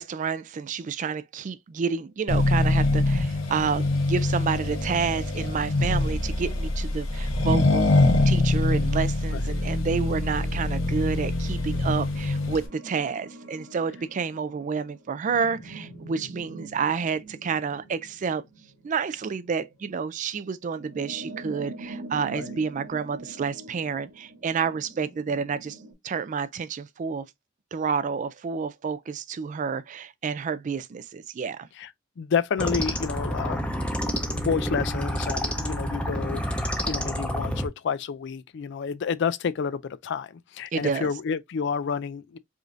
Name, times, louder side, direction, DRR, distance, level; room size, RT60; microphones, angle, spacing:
voice 1, 0.0-7.9 8.3-18.4 18.8-25.8 26.0-27.3 27.7-31.7 40.7-41.1, right 5 dB, 40° right, 0.3 m, -29 dB
Accelerating revving vroom, 2.3-12.7, left 2 dB, 90° left, 1.0 m, -24 dB
sound 1, 10.3-25.9, right 2 dB, 85° right, 2.1 m, -45 dB
voice 2, 32.2-33.6 34.2-36.5 36.9-42.4, left 6 dB, 60° left, 0.4 m, -29 dB
sound 2, 32.6-37.7, equal, 5° left, 0.6 m, -28 dB
4.9 x 2.6 x 2.5 m
head